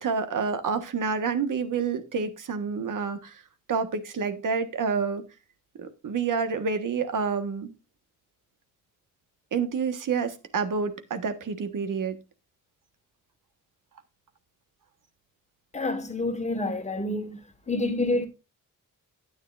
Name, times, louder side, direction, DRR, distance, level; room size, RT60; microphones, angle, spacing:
voice 1, 0.0-3.4 3.7-5.2 5.8-7.7 9.5-12.2, right 5 dB, 75° right, 1.5 m, -28 dB
voice 2, 15.7-17.4 17.7-18.3, left 2 dB, 20° left, 1.5 m, -28 dB
12.5 x 9.6 x 2.5 m
wide cardioid pair, 175°, 32 cm